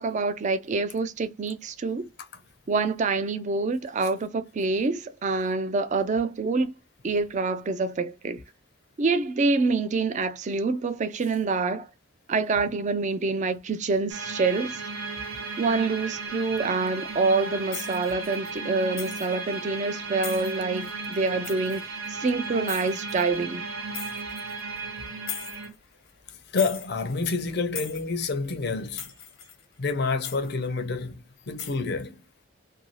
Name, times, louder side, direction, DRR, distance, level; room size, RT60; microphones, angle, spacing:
voice 1, 0.0-2.1 2.7-6.7 7.0-8.4 9.0-11.9 12.3-14.8 15.6-23.6, right 3 dB, 35° right, 0.4 m, -26 dB
sound 1, 14.1-25.7, right 3 dB, 85° right, 0.7 m, -35 dB
sound 2, 17.7-18.6 19.0-19.3 20.2-22.1 22.7-23.3 23.9-24.6 25.3-25.8 26.1-26.2 26.6-27.5 27.8-28.3 28.6-28.7 29.0-29.6 29.9-30.0 30.2-30.5 31.4-31.8, left 8 dB, 90° left, 0.8 m, -39 dB
voice 2, 26.5-29.0 29.8-32.2, left 4 dB, 55° left, 0.5 m, -28 dB
2.6 x 2.3 x 3.0 m
head